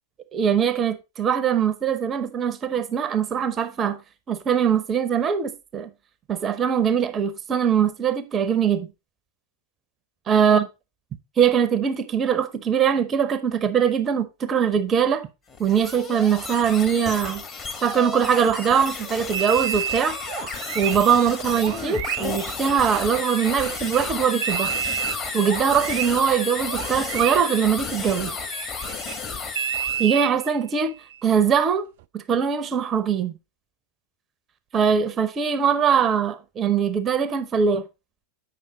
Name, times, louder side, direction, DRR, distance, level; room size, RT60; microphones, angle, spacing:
voice 1, 0.3-4.0 4.3-5.9 6.3-8.9 10.3-10.7 11.4-15.3 15.6-17.4 17.8-20.2 20.7-24.7 25.3-28.3 30.0-30.9 31.2-31.9 32.1-33.3 34.7-37.8, right 7 dB, 25° right, 0.6 m, -22 dB
sound 1, 15.5-30.1, left 5 dB, 25° left, 1.3 m, -32 dB
sound 2, 19.3-24.1 24.4-29.2 29.6-31.2 32.0-32.1, right 10 dB, 50° right, 0.3 m, -31 dB
7.9 x 5.6 x 4.0 m
figure-of-eight pair, 90°, 0 cm